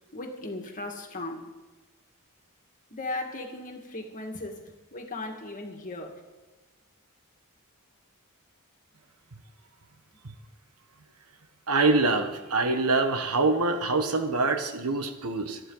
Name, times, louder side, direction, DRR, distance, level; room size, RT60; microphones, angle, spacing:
voice 1, 0.1-1.5 2.9-6.2, left 2 dB, 35° left, 2.0 m, -37 dB
voice 2, 11.7-15.6, right 3 dB, 80° right, 1.4 m, -25 dB
25.5 x 9.8 x 4.0 m
head